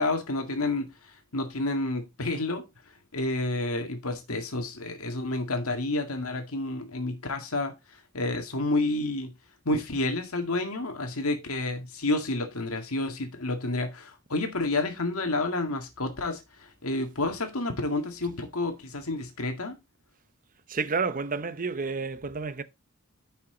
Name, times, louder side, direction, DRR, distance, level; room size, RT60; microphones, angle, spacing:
voice 1, 0.0-2.6 3.1-9.3 9.7-19.8, left 2 dB, 80° left, 2.0 m, -30 dB
voice 2, 20.7-22.6, right 4 dB, 40° right, 0.8 m, -30 dB
10.5 x 5.8 x 3.9 m
head